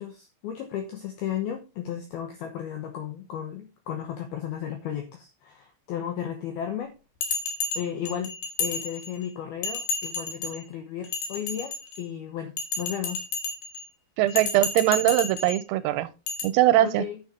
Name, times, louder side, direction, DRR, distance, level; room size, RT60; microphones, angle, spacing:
voice 1, 0.0-6.9 7.8-8.3 8.6-11.7 12.0-13.2 16.8-17.2, left 9 dB, 80° left, 2.2 m, -34 dB
Bell, 7.2-9.3 9.6-10.6 11.0-12.1 12.6-13.8 14.3-15.6 16.3-16.4, left 4 dB, 60° left, 3.0 m, -31 dB
voice 2, 14.2-16.1 16.4-17.0, right 14 dB, 90° right, 3.5 m, -21 dB
10.0 x 7.0 x 3.7 m
omnidirectional pair, 5.9 m